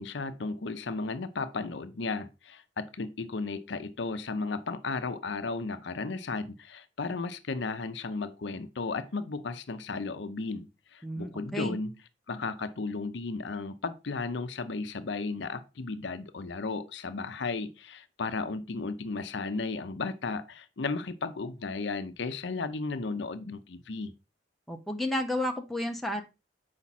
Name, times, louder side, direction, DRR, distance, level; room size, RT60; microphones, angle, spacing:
voice 1, 0.0-12.0 12.3-24.1, left 3 dB, 65° left, 0.6 m, -34 dB
voice 2, 11.0-11.8 24.7-26.2, left 1 dB, ahead, 0.8 m, -32 dB
7.2 x 5.1 x 4.1 m
head